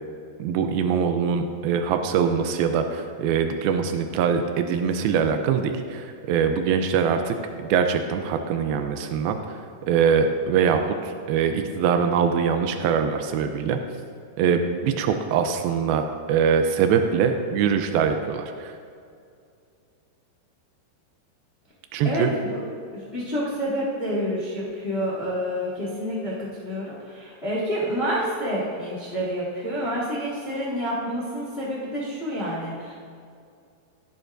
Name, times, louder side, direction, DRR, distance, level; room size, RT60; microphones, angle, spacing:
voice 1, 0.4-13.8 14.4-18.8 21.9-22.3, right 6 dB, 85° right, 6 dB, 2.1 m, -23 dB
voice 2, 22.0-22.6 23.1-32.9, equal, 75° left, -7 dB, 0.5 m, -28 dB
15.5 x 9.8 x 2.6 m, 2.4 s
omnidirectional pair, 5.0 m